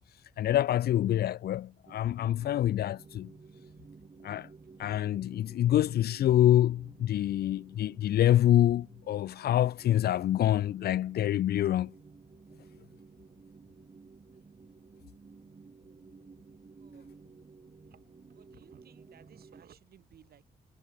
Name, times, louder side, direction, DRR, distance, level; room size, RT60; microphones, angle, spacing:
voice 1, 0.4-3.3 4.2-4.5 4.8-11.9, left 12 dB, 80° left, 0.7 m, -26 dB
sound 1, 1.9-19.6, right 4 dB, 40° right, 6.7 m, -54 dB
voice 2, 18.3-20.5, right 9 dB, 75° right, 6.0 m, -58 dB
cardioid pair, 80°, 16 cm